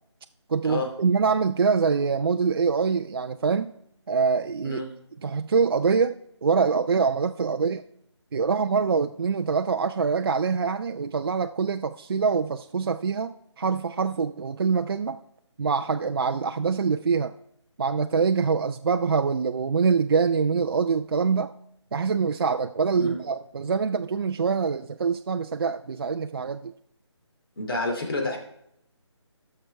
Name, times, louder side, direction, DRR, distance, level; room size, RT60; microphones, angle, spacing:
voice 1, 0.5-3.7 4.1-4.8 5.2-6.1 6.4-7.8 8.3-15.2 15.6-17.3 17.8-21.5 21.9-26.7, right 5 dB, 55° right, 8 dB, 0.4 m, -24 dB
voice 2, 27.6-28.4, left 2 dB, 50° left, 2 dB, 2.6 m, -29 dB
15.0 x 6.7 x 3.3 m, 0.77 s
figure-of-eight pair, 160°, 15 cm